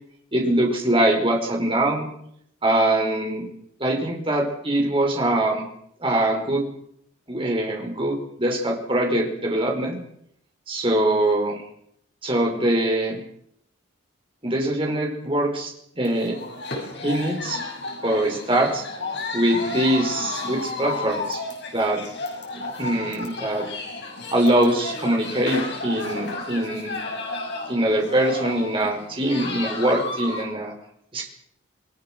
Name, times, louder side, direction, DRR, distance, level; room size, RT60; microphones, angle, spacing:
voice 1, 0.3-2.1 2.6-3.5 3.8-5.7 6.0-6.6 7.3-10.0 10.7-11.6 12.2-13.2 14.4-16.4 17.0-17.6 18.0-18.8 19.3-21.4 21.7-22.0 22.8-23.7 24.3-27.0 27.7-30.7 31.1-31.3, right 1 dB, 25° right, 1 dB, 5.4 m, -23 dB
sound 1, 16.0-30.4, left 3 dB, 55° left, 6.3 m, -32 dB
28.0 x 19.5 x 6.4 m, 0.71 s
head